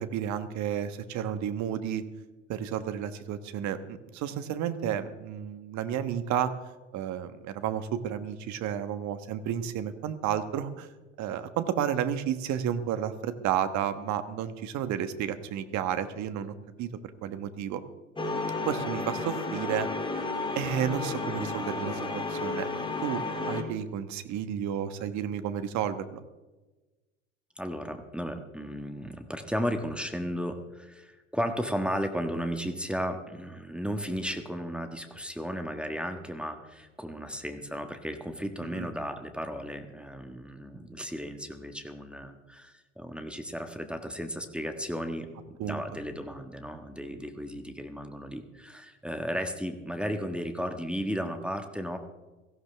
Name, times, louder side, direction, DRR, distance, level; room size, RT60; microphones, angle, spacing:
voice 1, 0.0-2.0 2.5-6.5 6.9-10.9 11.2-16.9 17.2-17.8 18.6-19.9 20.1-20.3 20.5-22.7 23.0-26.2 38.6-38.9 45.6-45.8, right 9 dB, 50° right, 11 dB, 1.3 m, -32 dB
sound 1, 18.2-23.6, left 3 dB, 15° left, 2.7 m, -32 dB
voice 2, 27.6-52.0, equal, 5° right, 5 dB, 1.4 m, -34 dB
17.5 x 15.0 x 3.4 m, 1.2 s
hypercardioid pair, 75°, 37 cm